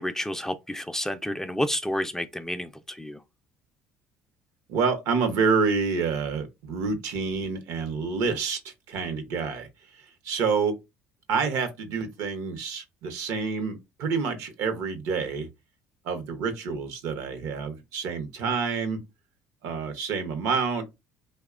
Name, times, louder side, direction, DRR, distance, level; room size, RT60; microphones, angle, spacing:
voice 1, 0.0-3.2, left 1 dB, 10° left, 0.3 m, -30 dB
voice 2, 4.7-9.7 10.2-10.7 11.3-15.5 16.0-19.0 19.6-20.8, right 5 dB, 70° right, 0.7 m, -28 dB
2.8 x 2.1 x 2.4 m
supercardioid pair, 85°, 6 cm